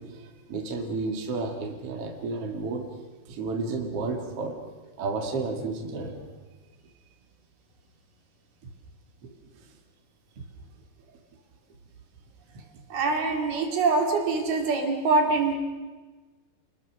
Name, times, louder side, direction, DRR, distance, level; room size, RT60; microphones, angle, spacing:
voice 1, 0.0-2.9 3.3-4.6 5.0-6.3 8.6-8.7 9.2-9.8 10.4-10.5, right 3 dB, 40° right, 2 dB, 2.7 m, -32 dB
voice 2, 12.9-15.6, right 3 dB, 65° right, 2 dB, 4.6 m, -24 dB
28.0 x 20.5 x 6.5 m, 1.3 s
omnidirectional pair, 4.7 m